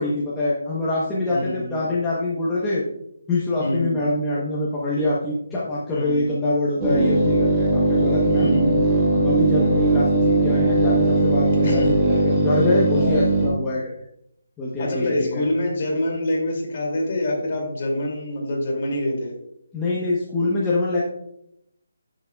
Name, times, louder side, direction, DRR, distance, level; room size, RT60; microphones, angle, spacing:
voice 1, 0.0-2.8 3.3-8.5 9.1-13.9 14.6-15.4 19.7-21.0, left 2 dB, 5° left, -7 dB, 1.0 m, -24 dB
voice 2, 1.3-1.8 3.6-4.0 5.9-6.3 8.3-8.9 11.6-11.9 13.0-13.1 14.8-19.3, left 1 dB, 30° left, -1 dB, 2.5 m, -25 dB
sound 1, 6.8-13.5, right 2 dB, 15° right, 1.4 m, -19 dB
10.0 x 8.1 x 2.3 m, 0.77 s
hypercardioid pair, 175°, 0 cm